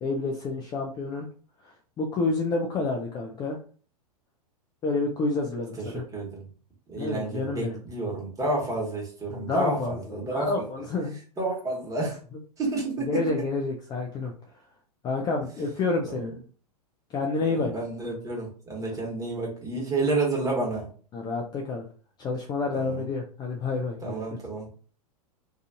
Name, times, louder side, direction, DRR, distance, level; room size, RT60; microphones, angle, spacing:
voice 1, 0.0-1.3 1.6-3.6 4.8-6.0 7.0-7.8 9.3-11.2 13.1-14.3 15.0-16.3 17.1-17.7 21.1-21.8 22.2-24.2, left 3 dB, 20° left, 1 dB, 0.4 m, -29 dB
voice 2, 5.9-6.5 6.9-10.6 11.4-12.2 12.6-13.2 16.0-16.4 17.5-20.9 22.7-23.0 24.0-24.7, right 2 dB, 15° right, -2 dB, 1.2 m, -30 dB
2.5 x 2.3 x 2.7 m, 0.40 s
figure-of-eight pair, 100°, 20 cm